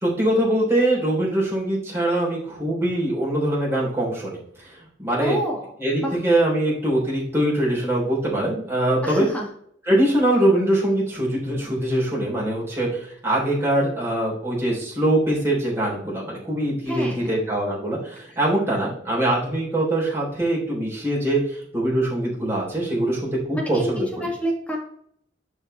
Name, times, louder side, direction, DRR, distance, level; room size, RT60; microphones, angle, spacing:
voice 1, 0.0-5.4 5.8-9.3 9.9-24.1, right 1 dB, 15° right, -5 dB, 3.6 m, -23 dB
voice 2, 5.2-5.7 6.0-6.2 9.0-9.5 16.9-17.3 18.3-18.4 23.5-24.8, equal, 10° left, -1 dB, 2.2 m, -28 dB
11.0 x 5.0 x 3.3 m, 0.66 s
head